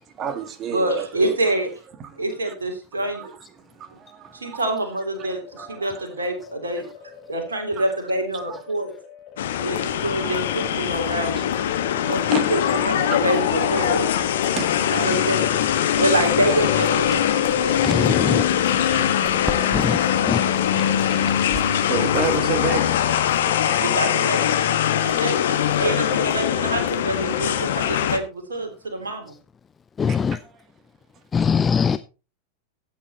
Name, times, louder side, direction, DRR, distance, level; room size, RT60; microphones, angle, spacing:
voice 1, 0.0-1.5 2.0-2.5 3.1-4.6 5.6-6.1 7.8-7.9 8.5-8.6 10.2-10.4 11.8-12.5 13.1-13.2 14.5-15.4 18.2-22.9 23.2-23.6 27.6-27.7 30.1-30.4, right 7 dB, 30° right, 1.8 m, -33 dB
voice 2, 0.7-1.7 2.2-3.3 3.9-4.0 4.3-6.9 7.3-8.9 9.6-11.4 12.0-12.6 12.8-14.1 14.9-15.6 16.0-17.2 23.6-24.6 25.0-25.4 25.8-29.3, right 1 dB, 70° right, 3.3 m, -26 dB
sound 1, 4.8-16.3, left 8 dB, 35° left, 4.7 m, -45 dB
sound 2, 9.4-28.2, left 10 dB, 60° left, 1.5 m, -22 dB
sound 3, 15.9-22.5, equal, 5° right, 1.6 m, -39 dB
voice 3, 17.8-18.5 19.7-20.0 20.3-20.4 30.0-30.4 31.3-32.0, left 6 dB, 20° left, 0.5 m, -21 dB
14.5 x 8.6 x 4.2 m
figure-of-eight pair, 90°, 0 cm